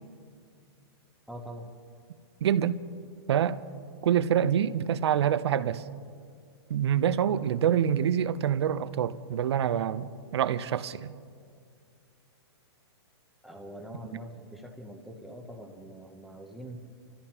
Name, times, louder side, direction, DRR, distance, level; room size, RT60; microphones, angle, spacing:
voice 1, 1.3-1.7 13.4-16.8, equal, ahead, 0.8 m, -43 dB
voice 2, 2.4-2.8 3.3-3.6 4.0-5.8 6.7-11.1, right 9 dB, 70° right, 0.7 m, -26 dB
29.5 x 14.0 x 2.9 m
hypercardioid pair, 155°, 14 cm